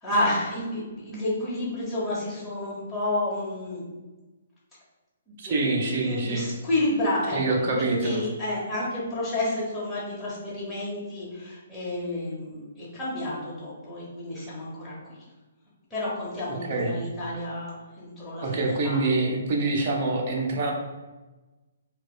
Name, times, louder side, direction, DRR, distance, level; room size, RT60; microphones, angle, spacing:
voice 1, 0.0-3.8 5.4-15.2 15.9-19.0, left 1 dB, 10° left, -9 dB, 1.3 m, -30 dB
voice 2, 5.4-6.5 7.3-8.3 16.5-17.0 18.4-20.7, right 2 dB, 45° right, 0 dB, 0.7 m, -26 dB
4.5 x 2.3 x 2.2 m, 1.2 s
figure-of-eight pair, 125°, 0 cm